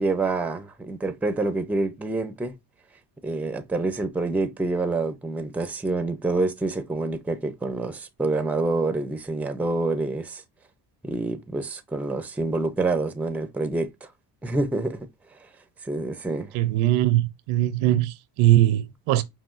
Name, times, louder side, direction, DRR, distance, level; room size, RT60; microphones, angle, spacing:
voice 1, 0.0-2.6 3.2-10.4 11.0-13.9 14.4-15.0 15.8-16.5, right 3 dB, 5° right, 0.4 m, -27 dB
voice 2, 16.5-19.2, right 14 dB, 85° right, 0.7 m, -21 dB
5.8 x 2.3 x 2.4 m
cardioid pair, 115°, 47 cm